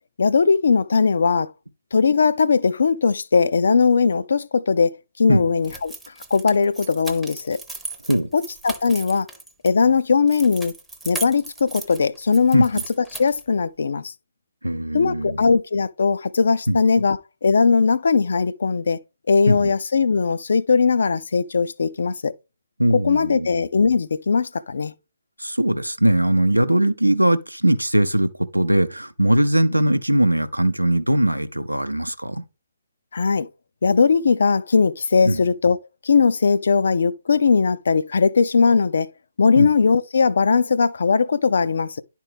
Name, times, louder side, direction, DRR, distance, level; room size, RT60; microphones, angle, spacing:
voice 1, 0.2-1.5 1.9-4.9 5.2-5.9 6.3-7.6 8.3-9.3 9.6-10.7 11.1-14.1 14.9-19.0 19.3-22.3 22.9-24.9 33.1-33.5 33.8-35.8 36.0-39.1 39.4-42.0, left 5 dB, 55° left, 0.4 m, -19 dB
sound 1, 5.6-9.7 10.3-13.5, right 3 dB, 5° right, 0.7 m, -36 dB
voice 2, 14.6-15.4 16.7-17.0 19.5-19.7 22.8-23.5 25.4-32.4 35.2-35.4 39.6-39.7, right 1 dB, 90° right, 0.6 m, -20 dB
10.5 x 4.5 x 3.4 m
figure-of-eight pair, 135°, 0 cm